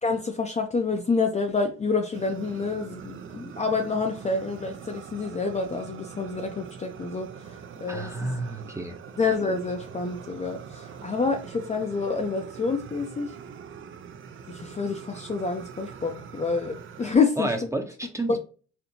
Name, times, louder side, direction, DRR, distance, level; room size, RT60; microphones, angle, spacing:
voice 1, 0.0-8.3 9.2-13.3 14.5-17.7 18.3-18.4, left 4 dB, 25° left, 4 dB, 0.5 m, -28 dB
Fire, 2.1-17.2, right 7 dB, 45° right, 0.4 m, -43 dB
voice 2, 7.9-9.0 17.4-18.4, right 2 dB, 10° right, 4 dB, 0.7 m, -30 dB
4.3 x 2.6 x 2.7 m, 0.36 s
cardioid pair, 90°, 30 cm